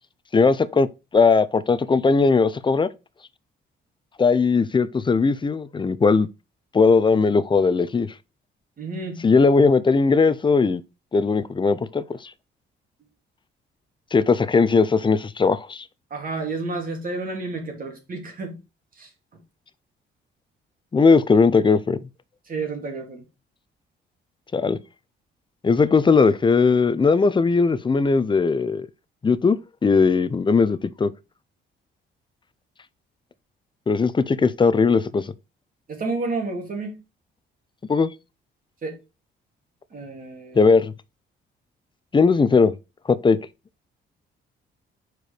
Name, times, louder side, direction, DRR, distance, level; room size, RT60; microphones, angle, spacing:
voice 1, 0.3-0.9 1.1-2.9 4.2-6.3 6.7-8.1 9.2-10.8 11.1-12.3 14.1-15.8 20.9-22.0 24.5-24.8 25.6-28.9 29.2-29.6 29.8-31.1 33.9-35.3 37.9-38.1 40.6-40.9 42.1-42.7 43.1-43.4, left 4 dB, 25° left, 0.6 m, -18 dB
voice 2, 8.8-9.2 16.1-18.6 19.0-19.1 22.5-23.2 35.9-37.0 38.8-39.0 39.9-40.6, right 3 dB, 45° right, 2.4 m, -30 dB
4.8 x 4.7 x 5.0 m
cardioid pair, 90°, 20 cm